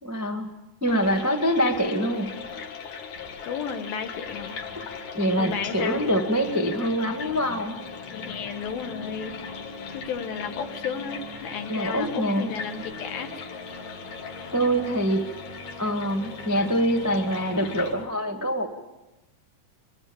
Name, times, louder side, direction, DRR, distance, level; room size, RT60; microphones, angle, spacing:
voice 1, 0.0-0.4 0.8-2.3 4.7-4.8 5.1-7.8 11.7-12.5 14.5-15.2 15.8-18.7, equal, 15° right, 3 dB, 0.5 m, -25 dB
sound 1, 0.9-17.9, left 6 dB, 60° left, 2.7 m, -39 dB
voice 2, 3.5-4.6 4.9-5.1 5.4-6.0 8.1-9.4 9.9-13.3, left 6 dB, 75° left, 7 dB, 3.4 m, -33 dB
sound 2, 4.0-18.1, left 2 dB, 35° left, 1.5 m, -44 dB
23.5 x 23.0 x 7.2 m, 1.0 s
omnidirectional pair, 4.3 m